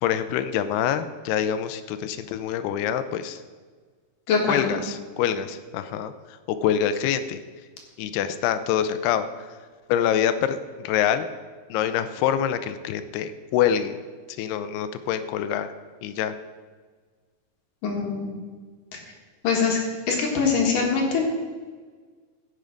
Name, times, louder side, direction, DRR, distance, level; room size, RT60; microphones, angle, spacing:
voice 1, 0.0-3.4 4.5-7.4 8.0-9.6 9.9-11.3 11.7-14.0 14.4-15.7 16.0-16.4, left 9 dB, 80° left, 11 dB, 2.6 m, -25 dB
voice 2, 4.3-4.8 17.8-18.3 18.9-19.0 19.4-19.8 20.1-21.2, left 5 dB, 60° left, 0 dB, 2.9 m, -23 dB
16.0 x 7.1 x 5.1 m, 1.5 s
omnidirectional pair, 4.7 m